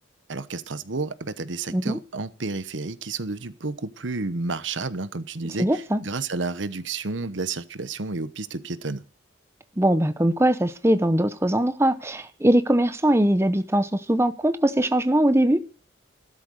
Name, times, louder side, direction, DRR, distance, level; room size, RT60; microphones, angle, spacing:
voice 1, 0.3-9.0, right 3 dB, 75° right, 1.1 m, -31 dB
voice 2, 1.7-2.0 5.6-6.0 9.8-15.6, right 1 dB, 15° right, 0.8 m, -21 dB
14.5 x 12.5 x 6.5 m
head